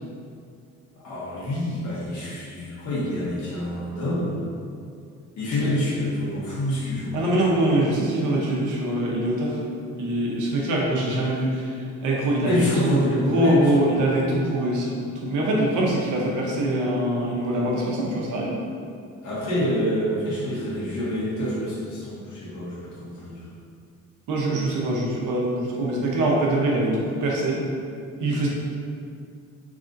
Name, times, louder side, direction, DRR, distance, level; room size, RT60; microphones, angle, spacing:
voice 1, 1.0-4.4 5.4-7.1 12.4-13.8 19.2-23.4, equal, 75° left, -8 dB, 1.3 m, -26 dB
voice 2, 7.1-9.6 10.0-11.7 12.0-12.5 12.8-18.6 24.3-27.6 28.2-28.5, right 1 dB, 85° right, -3 dB, 0.9 m, -23 dB
3.7 x 3.4 x 2.6 m, 2.4 s
cardioid pair, 90°, 30 cm